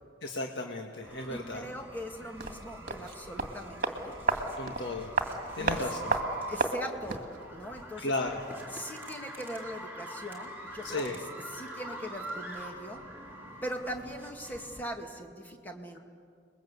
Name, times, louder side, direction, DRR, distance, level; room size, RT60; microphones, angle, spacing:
voice 1, 0.2-1.6 4.6-5.1 5.6-6.2 8.0-8.4 10.8-11.2, left 2 dB, 65° left, 2 dB, 1.7 m, -34 dB
sound 1, 1.0-14.8, right 1 dB, 10° right, 4.3 m, -44 dB
voice 2, 1.3-4.2 5.6-5.9 6.4-8.1 8.7-13.0 13.6-16.0, equal, 10° left, 2 dB, 2.1 m, -41 dB
sound 2, 2.4-7.4 7.6-7.7, right 3 dB, 45° right, 2.2 m, -33 dB
30.0 x 21.5 x 8.2 m, 2.2 s
head